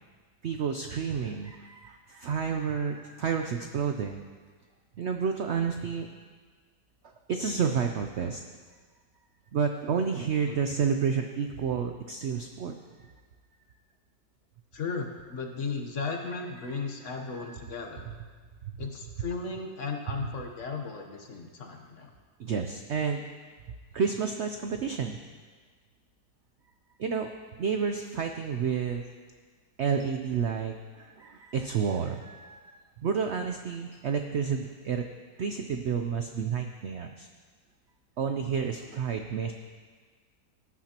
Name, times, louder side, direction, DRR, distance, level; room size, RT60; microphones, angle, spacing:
voice 1, 0.4-4.2 5.0-6.1 7.0-8.4 9.5-13.1 17.4-17.6 18.7-18.8 22.4-23.2 23.9-25.2 27.0-27.3 27.6-29.0 29.8-35.1 35.4-37.3 38.2-39.5, right 6 dB, 80° right, 5 dB, 0.6 m, -30 dB
voice 2, 14.7-18.1 18.8-22.1, left 4 dB, 50° left, 3 dB, 1.2 m, -35 dB
18.0 x 9.8 x 2.9 m, 1.5 s
omnidirectional pair, 1.9 m